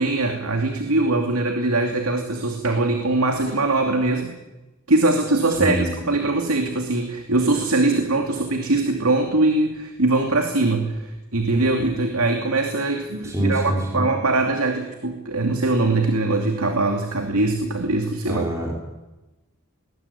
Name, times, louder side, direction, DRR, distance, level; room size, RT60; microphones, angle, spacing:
voice 1, 0.0-4.3 4.9-18.5, right 2 dB, 90° right, 4 dB, 2.6 m, -22 dB
voice 2, 13.2-14.1 18.3-18.8, right 1 dB, 15° right, -2 dB, 5.3 m, -25 dB
20.5 x 19.5 x 9.8 m, 1.1 s
head